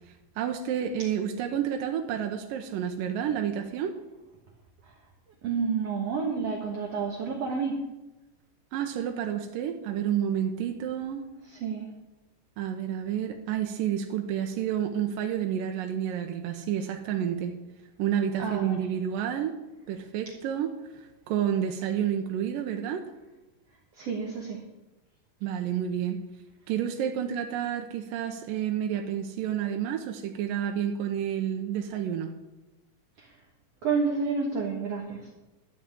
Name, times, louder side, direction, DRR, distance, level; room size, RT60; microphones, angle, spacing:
voice 1, 0.4-3.9 8.7-11.3 12.6-17.6 18.0-19.5 19.9-23.0 25.4-26.2 26.7-32.3, right 9 dB, 85° right, 4 dB, 2.6 m, -30 dB
voice 2, 5.4-7.8 11.6-11.9 18.4-18.8 24.0-24.6 33.8-35.2, right 5 dB, 55° right, -1 dB, 2.1 m, -29 dB
13.0 x 6.0 x 8.4 m, 1.0 s
omnidirectional pair, 3.9 m